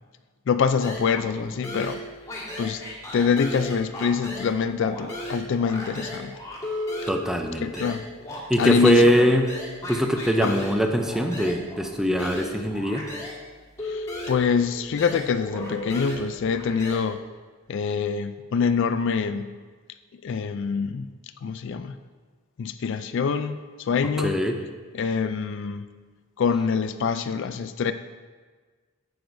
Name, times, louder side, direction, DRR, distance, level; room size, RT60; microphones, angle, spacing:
voice 1, 0.5-2.0 2.6-2.8 3.1-6.3 7.6-8.0 8.6-9.3 10.4-10.6 13.8-17.2 17.7-19.6 20.2-21.1 21.4-21.9 22.6-24.4 24.9-25.9 26.4-27.9, left 6 dB, 55° left, 11 dB, 0.3 m, -25 dB
sound 1, 0.8-1.4 1.6-4.5 4.8-13.4 13.8-17.0, left 1 dB, 15° left, 1.7 m, -36 dB
voice 2, 7.1-7.7 8.5-9.5 9.9-13.1 24.2-24.5, equal, ahead, 4 dB, 0.5 m, -22 dB
11.0 x 7.9 x 2.6 m, 1.4 s
head